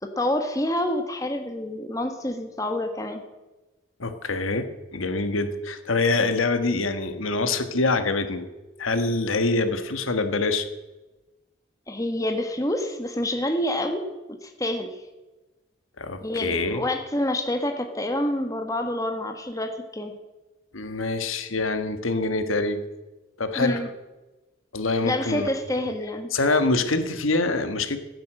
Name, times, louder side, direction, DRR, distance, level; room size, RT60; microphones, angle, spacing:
voice 1, 0.0-3.2 11.9-14.0 14.4-14.9 16.2-20.1 23.5-23.9 25.0-26.3, left 1 dB, 15° left, 5 dB, 1.5 m, -27 dB
voice 2, 4.0-8.5 8.8-10.7 16.0-16.8 20.7-22.8 23.4-23.8 24.7-25.5 26.3-28.0, left 3 dB, 90° left, 9 dB, 1.5 m, -25 dB
16.0 x 9.5 x 7.7 m, 1.1 s
head